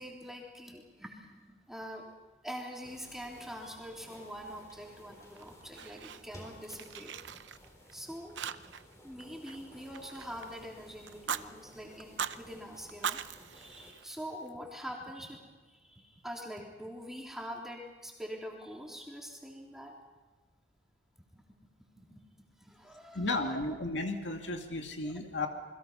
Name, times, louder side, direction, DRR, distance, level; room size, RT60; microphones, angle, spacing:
voice 1, 0.0-2.1 2.4-7.2 7.9-8.4 9.0-13.2 13.5-20.0 21.3-21.7 22.0-23.6 25.0-25.5, equal, ahead, -1 dB, 3.5 m, -45 dB
sound 1, 2.8-13.9, equal, 15° left, 4.1 m, -55 dB
Fire, 5.4-6.5 6.7-7.9 8.4-8.9 9.2-10.6 11.1-11.4 12.0-12.4 12.9-14.5, right 7 dB, 70° right, 0.7 m, -40 dB
voice 2, 23.1-25.5, left 2 dB, 70° left, 4 dB, 2.2 m, -34 dB
28.5 x 21.5 x 5.7 m, 1.3 s
head